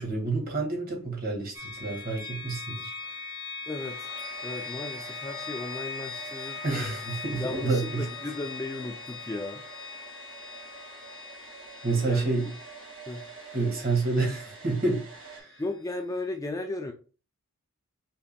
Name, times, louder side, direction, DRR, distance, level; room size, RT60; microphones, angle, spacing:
voice 1, 0.0-2.9 6.6-8.0 11.8-12.5 13.5-15.6, right 3 dB, 40° right, 1.6 m, -29 dB
sound 1, 1.5-15.4, left 5 dB, 70° left, 1.3 m, -41 dB
Domestic sounds home sounds, 3.6-15.4, right 5 dB, 60° right, 1.7 m, -46 dB
voice 2, 3.7-4.1 4.4-6.9 7.4-9.6 12.1-12.3 13.1-13.3 15.6-16.9, left 2 dB, 15° left, 0.3 m, -35 dB
5.7 x 3.8 x 2.2 m
head